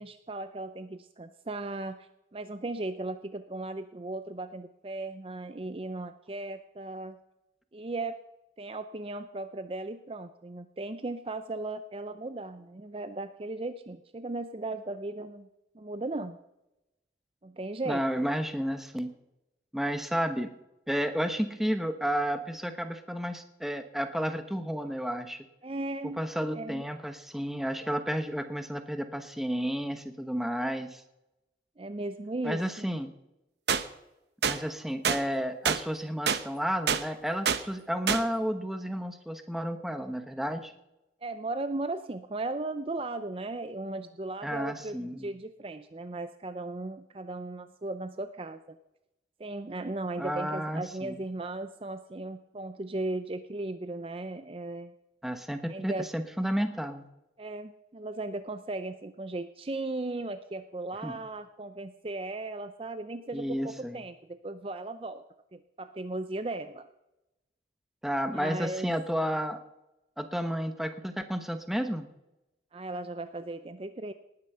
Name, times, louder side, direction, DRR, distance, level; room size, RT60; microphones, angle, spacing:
voice 1, 0.0-7.2 7.7-8.2 8.6-15.5 15.7-16.4 17.4-18.0 25.6-26.2 26.5-26.8 31.8-32.9 41.2-48.8 49.4-54.9 55.7-56.1 57.4-65.2 65.5-66.9 68.3-68.9 72.7-74.1, right 2 dB, 30° right, 11 dB, 0.5 m, -37 dB
voice 2, 17.8-19.1 19.7-20.5 20.9-25.4 26.0-31.0 32.4-33.1 34.4-40.7 44.4-45.3 50.2-51.2 55.2-57.1 61.0-61.2 63.3-64.0 68.0-69.6 70.2-72.1, equal, ahead, 7 dB, 1.0 m, -32 dB
sound 1, 33.7-33.8 34.4-34.6 35.0-35.2 35.6-35.8 36.3-36.4 36.9-37.0 37.4-37.6 38.1-38.2, right 7 dB, 75° right, 0.9 m, -26 dB
18.5 x 9.6 x 5.6 m, 0.93 s
head